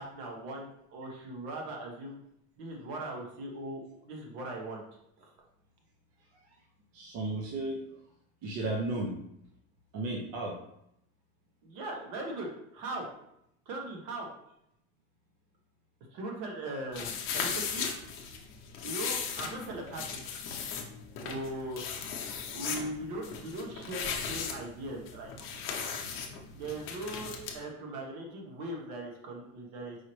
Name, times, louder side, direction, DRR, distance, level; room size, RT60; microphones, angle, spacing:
voice 1, 0.0-2.2 2.6-4.8 5.2-5.3 11.6-13.1 13.7-14.3 16.1-17.9 18.8-20.3 21.2-21.8 22.5-25.3 25.8-26.0 26.5-30.0, right 1 dB, 70° right, 0 dB, 1.2 m, -39 dB
voice 2, 6.9-7.8 8.4-9.1 9.9-10.6, right 2 dB, 50° right, -2 dB, 0.7 m, -33 dB
sound 1, 16.9-27.6, left 6 dB, 45° left, 0.6 m, -37 dB
4.7 x 2.9 x 3.1 m, 0.78 s
cardioid pair, 165°, 31 cm